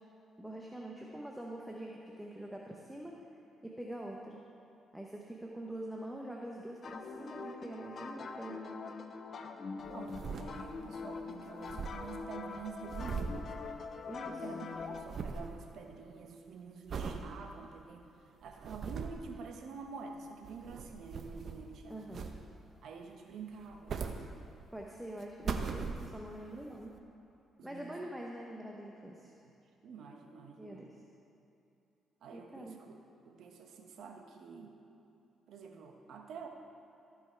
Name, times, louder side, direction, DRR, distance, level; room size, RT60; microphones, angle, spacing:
voice 1, 0.4-3.2 3.6-4.4 4.9-8.8 14.1-14.6 21.9-22.3 24.7-26.9 27.6-29.3 30.6-30.9 32.3-32.8, right 1 dB, 5° right, -1 dB, 0.9 m, -45 dB
sound 1, 6.8-15.0, left 4 dB, 50° left, 0.7 m, -43 dB
sound 2, 9.8-11.0 11.2-11.3 11.5-14.3 14.5-15.6 16.0-16.3 16.9-17.3 17.8-17.9 18.4-19.3 20.3-21.7 22.1-22.7 23.5-24.8 25.2-26.4 27.0-27.1, right 5 dB, 55° right, 0.7 m, -40 dB
voice 2, 9.9-13.5 14.2-18.0 18.4-22.2 22.8-24.3 27.6-28.1 29.4-29.5 29.8-30.9 32.2-33.0 33.2-34.7 35.5-36.5, right 5 dB, 70° right, 3 dB, 1.1 m, -48 dB
15.0 x 5.6 x 4.5 m, 2.8 s
cardioid pair, 90°, 0 cm